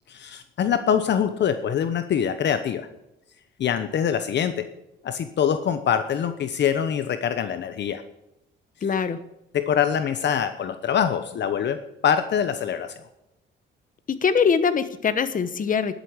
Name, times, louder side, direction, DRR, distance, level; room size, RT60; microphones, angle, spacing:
voice 1, 0.1-2.9 3.6-4.7 5.0-8.0 9.5-13.0, left 8 dB, 60° left, 10 dB, 1.0 m, -24 dB
voice 2, 8.8-9.2 14.2-15.9, left 6 dB, 45° left, 12 dB, 1.2 m, -22 dB
11.5 x 8.2 x 8.4 m, 0.86 s
cardioid pair, 90°, 20 cm